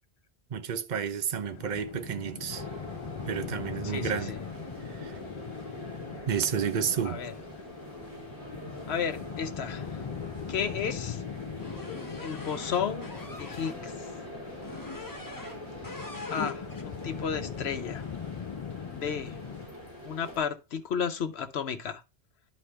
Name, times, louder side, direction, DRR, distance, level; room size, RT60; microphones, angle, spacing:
voice 1, 0.5-2.6 3.3-4.4 4.8-5.2 6.3-7.2, right 7 dB, 50° right, 0.8 m, -31 dB
sound 1, 1.4-19.7, left 7 dB, 50° left, 0.3 m, -41 dB
sound 2, 2.5-20.4, left 1 dB, 15° right, 4.2 m, -43 dB
voice 2, 3.8-4.4 7.0-7.3 8.9-10.0 10.5-11.2 12.2-13.1 13.4-13.9 16.3-18.1 18.9-19.4 20.0-22.0, left 7 dB, 85° left, 1.1 m, -33 dB
sound 3, 11.6-13.8 14.6-15.6 15.8-16.9, left 3 dB, 20° left, 1.2 m, -41 dB
11.5 x 4.3 x 3.4 m
omnidirectional pair, 1.0 m